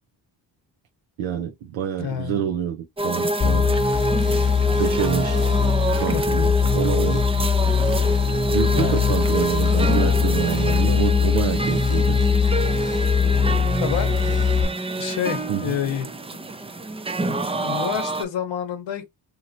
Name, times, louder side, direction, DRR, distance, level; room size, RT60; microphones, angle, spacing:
voice 1, 1.2-3.8 4.8-5.4 6.0-7.2 8.5-12.2 15.5-15.8, right 9 dB, 90° right, 0.6 m, -27 dB
voice 2, 2.0-2.4 5.9-6.5 8.7-9.2 13.0-13.2 13.8-14.2 15.0-16.1 17.6-19.1, left 9 dB, 70° left, 0.9 m, -28 dB
sound 1, 3.0-18.2, right 1 dB, 15° right, 0.4 m, -26 dB
sound 2, 3.4-14.7, left 6 dB, 15° left, 0.9 m, -21 dB
2.9 x 2.9 x 2.5 m
cardioid pair, 60°, 46 cm